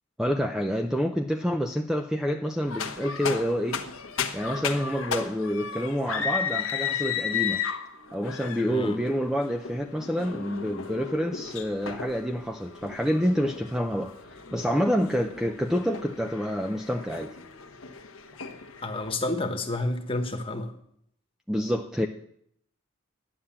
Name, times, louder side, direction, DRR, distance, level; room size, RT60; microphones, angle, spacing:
voice 1, 0.2-3.8 4.3-7.6 8.1-17.3 21.5-22.1, equal, 5° right, 5 dB, 0.5 m, -28 dB
sound 1, 2.7-19.1, left 7 dB, 85° left, 1.1 m, -35 dB
voice 2, 8.7-9.0 18.8-20.7, left 2 dB, 25° left, 5 dB, 1.3 m, -30 dB
11.5 x 9.8 x 7.3 m, 0.71 s
head